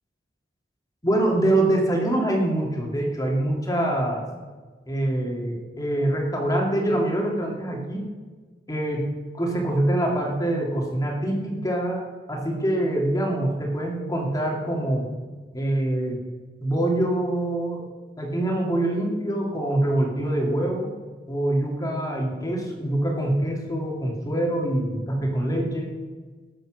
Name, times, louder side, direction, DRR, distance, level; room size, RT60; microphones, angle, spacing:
voice 1, 1.0-4.2 4.9-8.0 8.7-12.0 12.3-15.1 15.5-16.2 16.6-17.8 18.2-20.9 21.3-25.9, right 1 dB, 20° left, -1 dB, 2.7 m, -24 dB
19.0 x 7.6 x 6.5 m, 1.4 s
head